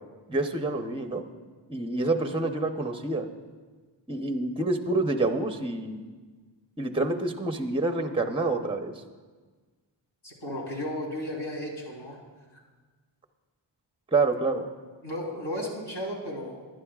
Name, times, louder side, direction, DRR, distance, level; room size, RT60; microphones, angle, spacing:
voice 1, 0.3-1.2 1.7-3.3 4.1-6.0 6.8-8.9 14.1-14.7, right 2 dB, 10° right, 6 dB, 0.8 m, -27 dB
voice 2, 10.2-12.2 15.0-16.6, left 1 dB, 60° left, -3 dB, 3.6 m, -34 dB
20.0 x 11.0 x 2.4 m, 1.4 s
wide cardioid pair, 75°, 47 cm